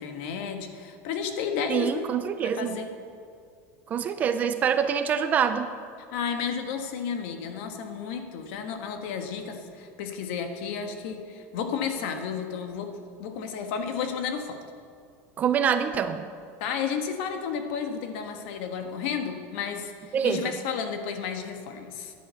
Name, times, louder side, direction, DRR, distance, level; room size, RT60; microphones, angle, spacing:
voice 1, 0.0-2.1 2.4-2.9 6.1-12.9 13.2-14.6 16.6-22.1, left 6 dB, 55° left, 5 dB, 1.4 m, -32 dB
voice 2, 1.7-2.8 3.9-5.7 15.4-16.3 20.1-20.6, right 7 dB, 20° right, 10 dB, 0.4 m, -25 dB
13.5 x 10.0 x 6.9 m, 2.3 s
supercardioid pair, 175°, 8 cm